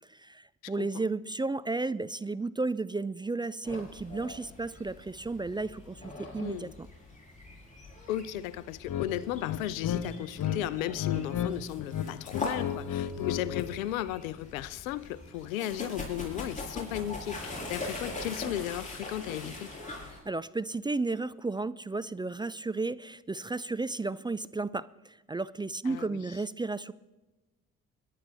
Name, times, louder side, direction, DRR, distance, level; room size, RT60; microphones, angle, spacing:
voice 1, 0.1-6.9 20.3-26.9, right 3 dB, 10° right, 0.3 m, -33 dB
voice 2, 0.6-1.0 6.4-6.7 8.1-19.7 25.9-26.2, left 13 dB, 85° left, 0.6 m, -35 dB
sound 1, 3.6-20.2, left 2 dB, 20° left, 6.0 m, -42 dB
sound 2, 8.9-9.1 9.4-10.6 10.9-11.5 11.8-13.7, left 10 dB, 50° left, 1.1 m, -32 dB
22.0 x 11.0 x 3.5 m
hypercardioid pair, 45°, 40 cm